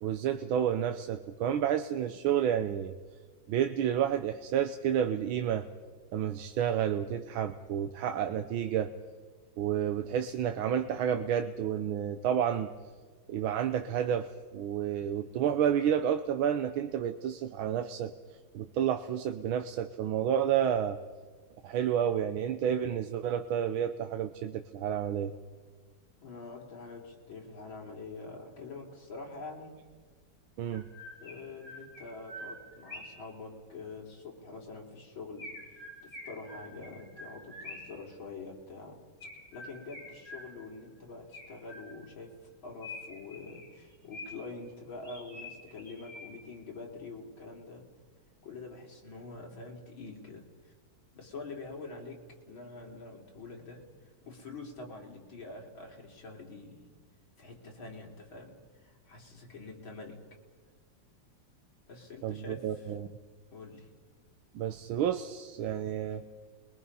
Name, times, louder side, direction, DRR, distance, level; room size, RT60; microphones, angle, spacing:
voice 1, 0.0-2.9 3.5-5.7 6.1-8.9 9.6-12.7 13.3-18.1 18.5-21.0 21.6-25.3 30.6-30.9 62.2-63.1 64.5-66.2, right 9 dB, 85° right, 8 dB, 1.6 m, -30 dB
voice 2, 26.2-29.8 31.2-35.5 36.0-39.0 39.5-42.3 42.6-47.9 48.4-50.7 51.1-52.2 52.5-56.9 57.4-60.2 61.9-62.9 63.5-63.9, left 3 dB, 75° left, -1 dB, 4.4 m, -45 dB
Chirp tweet, 29.9-30.0 30.7-33.3 35.4-38.0 39.2-40.8 41.3-42.2 42.8-44.6 45.0-46.5, left 2 dB, 35° left, 7.7 m, -47 dB
28.5 x 22.5 x 5.6 m, 1.5 s
omnidirectional pair, 2.2 m